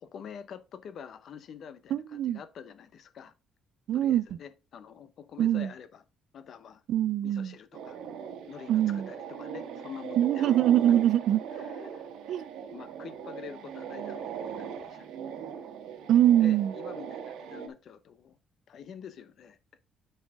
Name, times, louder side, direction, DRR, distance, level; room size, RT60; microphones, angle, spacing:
voice 1, 0.0-3.3 3.9-6.0 6.3-6.8 7.2-8.0 8.5-10.7 11.5-15.5 16.0-18.4 18.7-19.8, left 7 dB, 55° left, 0.8 m, -47 dB
voice 2, 1.9-2.4 3.9-4.2 5.4-5.7 6.9-7.5 8.7-9.1 10.2-11.6 12.3-12.4 16.1-16.7, right 11 dB, 65° right, 0.4 m, -23 dB
sound 1, 7.7-17.7, right 7 dB, 85° right, 1.2 m, -40 dB
9.7 x 5.5 x 3.6 m
cardioid pair, 135°, 0 cm